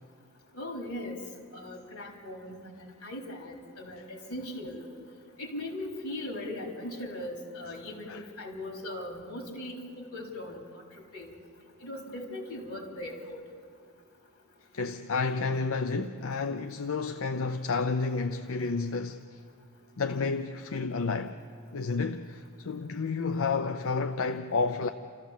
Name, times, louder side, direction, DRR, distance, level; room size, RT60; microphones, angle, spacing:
voice 1, 0.5-1.2 1.5-4.9 5.4-10.8 11.1-11.3 11.8-13.4, left 1 dB, 85° left, 3.8 m, -39 dB
voice 2, 14.7-19.2 20.0-21.4 21.7-24.9, left 4 dB, 65° left, 0.6 m, -30 dB
30.0 x 14.0 x 7.4 m
head